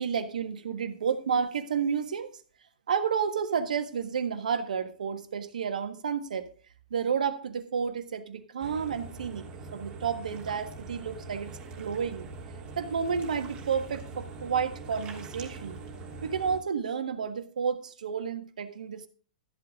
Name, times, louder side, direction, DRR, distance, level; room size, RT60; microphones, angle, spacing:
voice 1, 0.0-2.3 2.9-6.5 6.9-9.5 9.7-12.3 12.7-15.8 16.2-19.1, right 6 dB, 70° right, 10 dB, 1.5 m, -31 dB
sound 1, 8.6-16.6, right 3 dB, 25° right, 3.2 m, -43 dB
13.5 x 8.0 x 3.6 m, 0.41 s
figure-of-eight pair, 110°, 4 cm